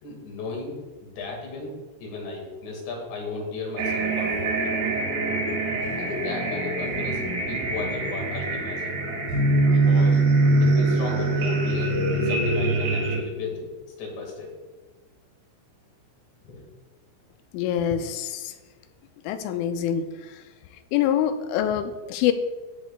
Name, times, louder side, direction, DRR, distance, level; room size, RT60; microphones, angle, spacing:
voice 1, 0.0-4.6 6.0-7.2 7.5-9.0 9.7-10.2 10.6-13.7 14.0-14.5 16.4-16.6, left 3 dB, 65° left, 0 dB, 4.0 m, -35 dB
sound 1, 3.8-13.2, right 2 dB, 60° right, 3.6 m, -23 dB
voice 2, 17.5-18.5 19.3-20.0 20.9-22.3, left 10 dB, 85° left, 8 dB, 2.8 m, -25 dB
16.5 x 7.9 x 2.4 m, 1.2 s
omnidirectional pair, 5.9 m